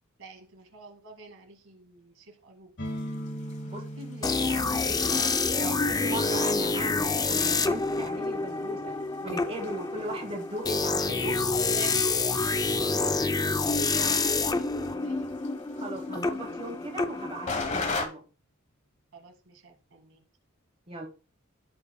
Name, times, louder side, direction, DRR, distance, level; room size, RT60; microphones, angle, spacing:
voice 1, 0.2-2.7 4.0-4.4 11.7-13.2 13.9-15.3 19.1-20.2, right 3 dB, 70° right, 1.9 m, -47 dB
sound 1, 2.8-10.4, equal, 55° left, 1.6 m, -43 dB
sound 2, 2.8-18.1, left 3 dB, 35° left, 1.1 m, -42 dB
sound 3, 4.2-17.9, left 3 dB, 20° left, 0.4 m, -28 dB
voice 2, 4.4-5.2 5.6-8.9 9.2-11.3 14.0-14.2 15.8-18.2 20.9-21.1, right 1 dB, 30° right, 1.1 m, -38 dB
15.0 x 5.4 x 2.2 m
head